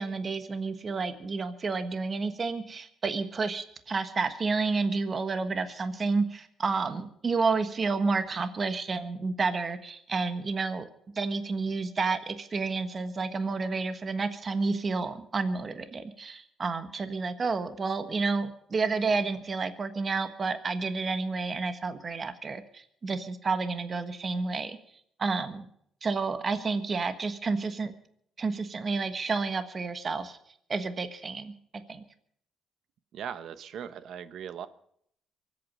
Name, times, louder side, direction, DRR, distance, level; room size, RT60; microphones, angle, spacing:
voice 1, 0.0-10.9 11.1-24.8 25.2-25.7 26.0-27.9 28.4-30.4 30.7-31.5 31.9-32.0, right 4 dB, 40° right, 9 dB, 1.4 m, -30 dB
voice 2, 33.1-34.7, right 8 dB, 70° right, 13 dB, 1.0 m, -39 dB
24.0 x 8.7 x 5.4 m, 0.68 s
cardioid pair, 90°, 0 cm